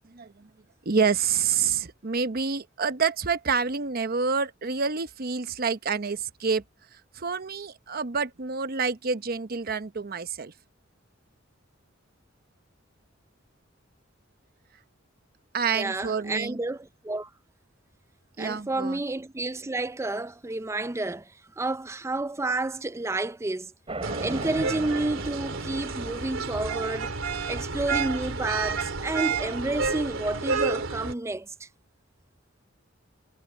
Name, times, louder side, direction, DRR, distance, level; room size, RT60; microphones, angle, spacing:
voice 1, 0.1-0.5 0.9-6.6 7.1-10.5 15.5-16.6 18.4-19.0, right 5 dB, 50° right, 0.9 m, -28 dB
voice 2, 15.7-17.3 18.4-23.7 24.2-27.1 27.5-31.7, right 2 dB, 15° right, 0.5 m, -30 dB
sound 1, 23.9-26.7, right 2 dB, 30° right, 4.0 m, -38 dB
sound 2, 24.0-31.1, right 4 dB, 90° right, 3.0 m, -30 dB
head